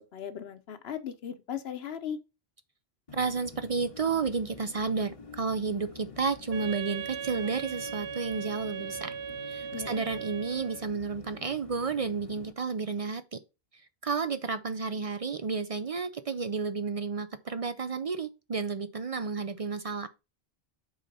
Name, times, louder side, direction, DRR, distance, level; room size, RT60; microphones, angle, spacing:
voice 1, 0.1-2.2 9.7-10.0, left 8 dB, 75° left, 1.1 m, -37 dB
sound 1, 3.1-12.5, left 4 dB, 35° left, 0.9 m, -48 dB
voice 2, 3.1-9.1 9.5-13.4 14.0-20.1, right 4 dB, 45° right, 0.5 m, -31 dB
Wind instrument woodwind instrument, 6.5-10.9, right 8 dB, 85° right, 0.9 m, -38 dB
6.4 x 4.1 x 5.4 m
omnidirectional pair, 1.1 m